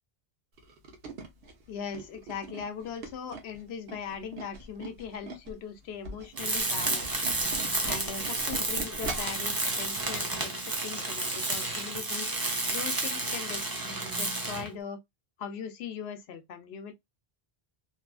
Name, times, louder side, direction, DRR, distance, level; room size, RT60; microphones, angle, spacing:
Tools, 0.6-5.6 5.9-9.4 9.8-10.0 10.3-10.4, right 3 dB, 70° right, 0.9 m, -41 dB
voice 1, 1.7-7.1 7.8-10.5 10.8-12.3 12.7-15.0 15.4-16.9, left 6 dB, 80° left, 0.8 m, -40 dB
Tools 2, 6.4-14.7, right 2 dB, 25° right, 0.5 m, -31 dB
2.9 x 2.4 x 2.3 m
omnidirectional pair, 1.0 m